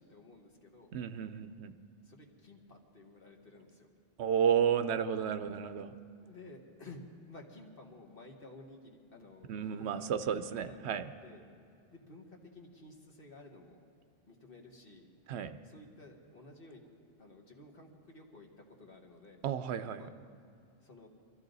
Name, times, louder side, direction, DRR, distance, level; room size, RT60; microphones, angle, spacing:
voice 1, 0.0-0.9 2.0-3.9 6.2-10.9 11.1-11.5 11.9-13.8 14.3-15.1 15.6-16.8 17.2-19.4 20.0-20.1 20.8-21.1, left 2 dB, 55° left, 1 dB, 1.8 m, -54 dB
voice 2, 0.9-1.7 4.2-5.9 9.5-11.1 15.3-15.6 19.4-20.0, right 8 dB, 75° right, 11 dB, 0.9 m, -32 dB
23.5 x 14.0 x 4.0 m, 2.5 s
omnidirectional pair, 1.1 m